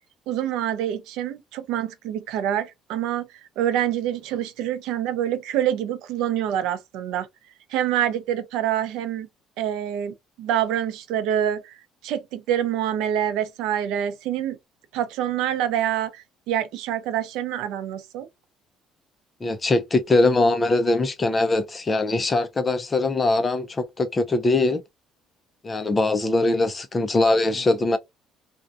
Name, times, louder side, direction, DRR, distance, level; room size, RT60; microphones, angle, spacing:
voice 1, 0.3-3.3 3.6-7.3 7.7-9.3 9.6-11.7 12.0-14.6 14.9-18.3, right 10 dB, 85° right, 0.5 m, -26 dB
voice 2, 19.4-24.8 25.6-28.0, left 2 dB, 15° left, 0.3 m, -22 dB
2.6 x 2.1 x 2.3 m
cardioid pair, 175°, 0 cm